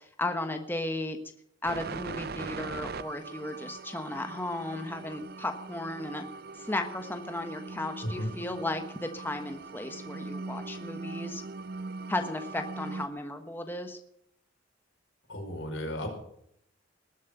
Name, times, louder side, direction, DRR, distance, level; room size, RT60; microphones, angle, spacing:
voice 1, 0.2-1.2 1.6-6.3 6.6-11.4 12.1-14.0, left 2 dB, 10° left, 5 dB, 1.2 m, -35 dB
sound 1, 1.6-13.1, right 4 dB, 55° right, 0.6 m, -41 dB
voice 2, 15.3-16.1, equal, 85° left, 2 dB, 5.2 m, -34 dB
20.0 x 7.6 x 7.9 m, 0.72 s
head